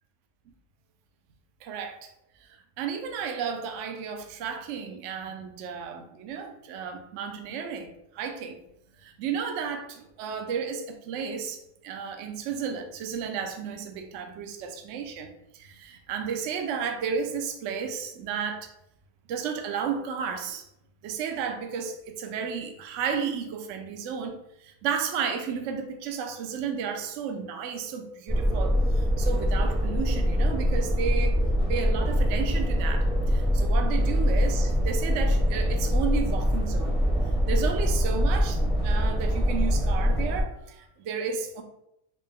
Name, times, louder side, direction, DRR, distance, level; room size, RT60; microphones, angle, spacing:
voice 1, 1.6-2.1 2.4-8.6 9.0-18.7 19.3-20.7 21.0-31.4 31.7-37.0 37.5-41.6, right 6 dB, 65° right, 5 dB, 0.7 m, -33 dB
sound 1, 28.3-40.4, equal, 5° right, 0.6 m, -24 dB
4.0 x 2.2 x 3.6 m, 0.80 s
omnidirectional pair, 1.7 m